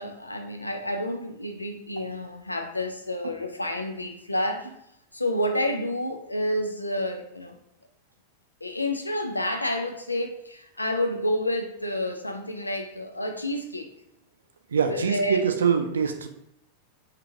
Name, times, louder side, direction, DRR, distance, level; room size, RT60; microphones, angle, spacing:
voice 1, 0.0-4.7 5.1-7.6 8.6-13.9 14.8-15.5, left 1 dB, 85° left, 0.4 m, -29 dB
voice 2, 14.7-16.3, right 6 dB, 70° right, 0.4 m, -24 dB
3.5 x 2.8 x 2.5 m
figure-of-eight pair, 90°, 0 cm